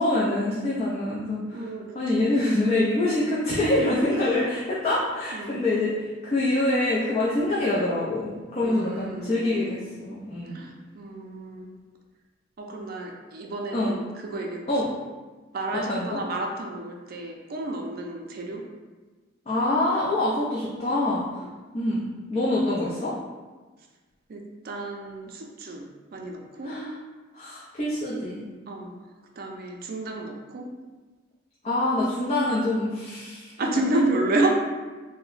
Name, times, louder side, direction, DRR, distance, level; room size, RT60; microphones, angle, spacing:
voice 1, 0.0-1.7 1.9-6.0 6.2-10.6 13.7-13.9 14.7-14.9 15.7-16.2 19.5-21.4 21.7-23.1 26.6-26.9 27.3-28.4 31.6-33.7, left 1 dB, 35° left, -7 dB, 0.5 m, -25 dB
voice 2, 1.5-1.9 2.2-2.3 4.1-4.4 5.3-5.6 8.6-9.8 10.5-11.7 12.6-14.7 15.5-18.6 21.4-21.5 24.3-26.7 28.7-29.0 29.4-30.7 33.6-34.6, right 2 dB, 50° right, 1 dB, 0.4 m, -30 dB
2.8 x 2.1 x 3.9 m, 1.3 s
head